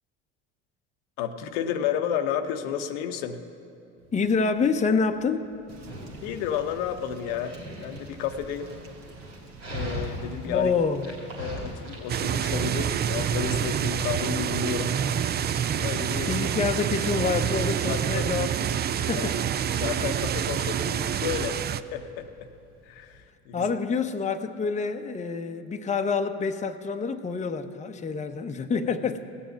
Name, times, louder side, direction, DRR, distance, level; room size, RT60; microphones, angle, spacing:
voice 1, 1.2-3.4 6.2-8.7 9.7-10.7 11.4-14.9 15.8-16.3 17.9-18.3 19.1-19.3 19.8-21.6 21.9-22.5 22.8-23.6 28.7-28.9, left 8 dB, 75° left, 7 dB, 0.8 m, -31 dB
Dog, 4.0-23.2, equal, 90° right, 3.6 m, -42 dB
voice 2, 4.1-5.5 10.4-11.1 16.3-18.5 19.0-19.4 23.5-29.2, left 5 dB, 20° left, 7 dB, 0.7 m, -27 dB
sound 1, 5.7-15.3, right 3 dB, 50° right, 1.4 m, -47 dB
sound 2, 12.1-21.8, right 9 dB, 30° right, 0.4 m, -27 dB
17.0 x 7.1 x 7.7 m, 2.5 s
hypercardioid pair, 70°, 34 cm